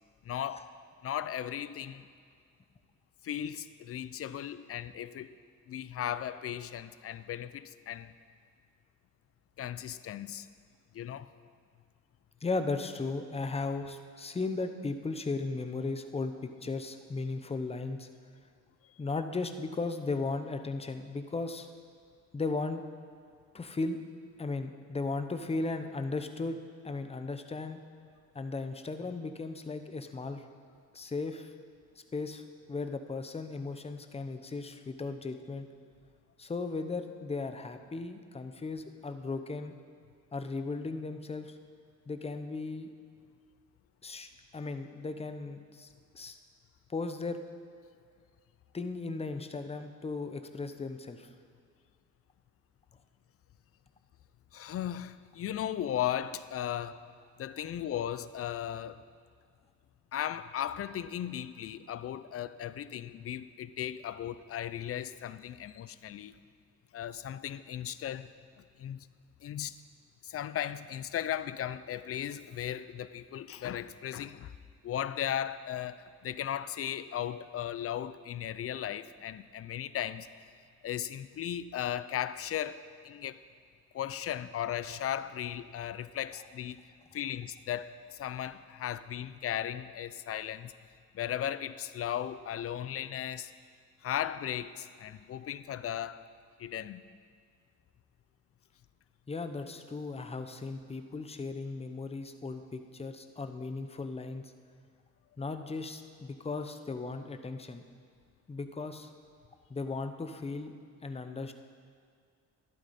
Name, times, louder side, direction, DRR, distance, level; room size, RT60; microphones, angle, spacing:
voice 1, 0.2-0.7 1.0-2.1 3.2-5.3 5.7-8.1 9.6-10.5 10.9-11.3 54.5-57.0 57.4-59.0 60.1-66.3 66.9-68.3 68.8-69.1 69.4-69.8 70.2-74.5 74.8-80.3 80.8-83.4 83.9-86.8 87.1-90.7 91.1-93.5 94.0-96.3 96.6-97.0, left 10 dB, 50° left, 0.5 m, -36 dB
voice 2, 12.4-18.1 19.0-21.7 22.3-22.8 23.5-24.0 24.4-26.6 26.8-27.8 28.3-30.4 30.9-31.5 32.1-35.7 36.4-39.7 40.3-41.6 42.1-42.9 44.0-45.9 46.1-46.4 46.9-47.4 48.7-51.3 99.3-104.4 105.4-107.8 108.5-109.1 109.7-110.7 111.0-111.5, left 3 dB, 20° left, 0.8 m, -36 dB
12.0 x 11.5 x 4.2 m
cardioid pair, 90°, 30 cm